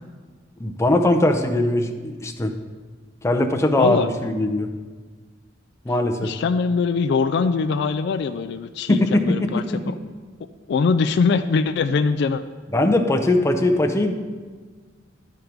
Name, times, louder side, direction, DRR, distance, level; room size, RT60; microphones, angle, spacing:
voice 1, 0.6-2.5 3.2-4.7 5.8-6.3 8.9-9.8 12.7-14.1, left 1 dB, 15° left, 4 dB, 0.6 m, -20 dB
voice 2, 3.8-4.1 6.2-9.6 10.7-12.4, left 5 dB, 60° left, 11 dB, 0.3 m, -22 dB
12.0 x 4.6 x 5.1 m, 1.4 s
head